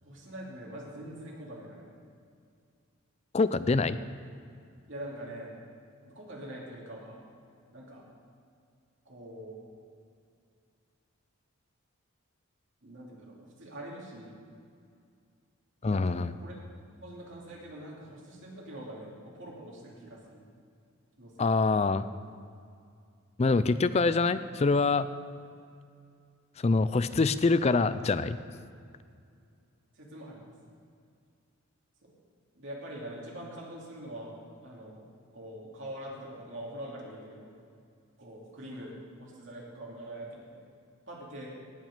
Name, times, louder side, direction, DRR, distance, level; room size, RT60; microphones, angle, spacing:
voice 1, 0.0-1.9 4.9-5.6 6.0-7.3 7.7-8.0 9.0-9.7 12.8-14.4 15.9-16.6 17.0-20.4 21.2-21.8 29.9-30.5 32.0-32.1 32.5-35.0 35.3-37.5 38.2-40.6 41.1-41.5, right 1 dB, 60° right, -4 dB, 2.8 m, -44 dB
voice 2, 3.3-4.0 15.8-16.3 21.4-22.1 23.4-25.1 26.6-28.4, left 3 dB, 30° left, 13 dB, 0.4 m, -25 dB
17.5 x 6.2 x 6.7 m, 2.3 s
head